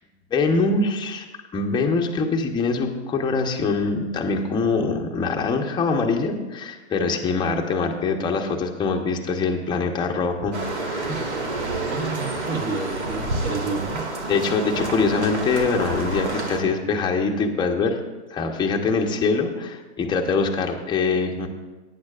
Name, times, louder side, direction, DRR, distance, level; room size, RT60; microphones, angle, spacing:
voice 1, 0.3-1.3 1.5-10.6 10.8-11.1 14.3-18.0 18.3-21.5, left 4 dB, 15° left, 2 dB, 1.0 m, -23 dB
sound 1, 10.5-16.6, right 2 dB, 90° right, 2.0 m, -29 dB
voice 2, 11.1-11.4 11.9-14.1, right 4 dB, 35° right, 2 dB, 1.9 m, -30 dB
18.0 x 9.6 x 2.5 m, 1.2 s
hypercardioid pair, 125°, 34 cm